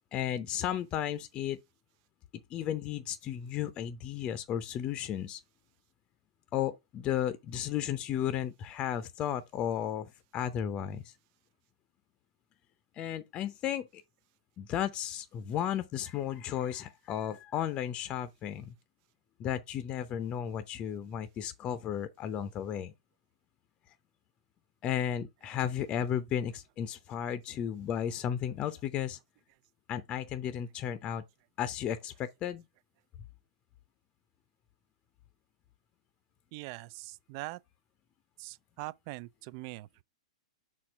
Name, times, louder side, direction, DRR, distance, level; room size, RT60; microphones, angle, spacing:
voice 1, 0.1-1.6 2.5-5.4 6.5-11.1 12.9-14.0 14.6-18.7 19.4-22.9 24.8-29.2 29.9-31.2 31.6-32.6, left 10 dB, 30° left, 0.6 m, -34 dB
voice 2, 36.5-37.6 38.4-40.0, right 20 dB, 45° right, 0.4 m, -42 dB
6.0 x 4.4 x 4.7 m
hypercardioid pair, 130°, 3 cm